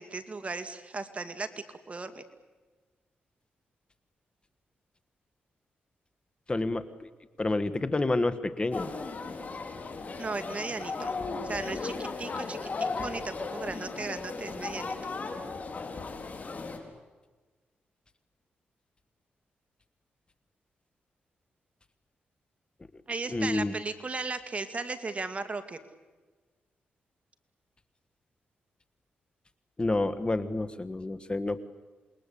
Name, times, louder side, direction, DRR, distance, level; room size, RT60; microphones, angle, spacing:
voice 1, 0.0-1.5 1.9-2.2 10.2-11.1 11.4-14.9 23.1-25.8, right 3 dB, 35° right, 9 dB, 2.4 m, -36 dB
voice 2, 6.5-6.8 7.4-8.9 23.3-23.7 29.8-31.6, left 2 dB, 25° left, 11 dB, 1.5 m, -28 dB
sound 1, 8.7-16.8, left 4 dB, 45° left, 4.2 m, -36 dB
28.0 x 21.5 x 8.5 m, 1.3 s
cardioid pair, 75°, 4 cm